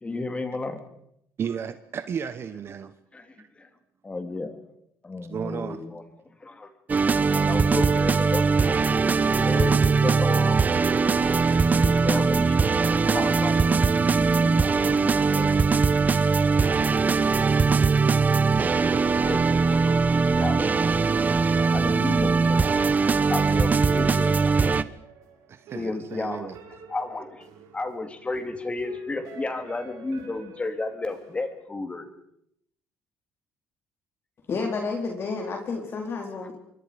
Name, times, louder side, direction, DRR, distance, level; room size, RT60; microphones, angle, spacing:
voice 1, 0.0-0.8 3.1-3.7 4.0-4.6 5.0-6.0 6.4-6.7 7.3-8.9 9.3-10.6 11.2-11.3 11.7-13.7 14.1-15.5 18.8-20.0 20.3-20.9 21.7-22.8 23.3-24.7 25.7-26.5 26.9-27.5 27.7-32.1, left 3 dB, 20° left, 3.4 m, -33 dB
voice 2, 1.4-2.9 3.4-3.5 5.2-5.8 18.5-19.0 25.5-26.5, right 7 dB, 45° right, 1.3 m, -34 dB
sound 1, 6.9-24.8, right 4 dB, 25° right, 1.0 m, -21 dB
sound 2, 21.1-31.5, right 5 dB, 80° right, 5.8 m, -48 dB
voice 3, 34.5-36.5, left 4 dB, 40° left, 4.0 m, -30 dB
27.0 x 23.0 x 5.3 m
cardioid pair, 105°, 6 cm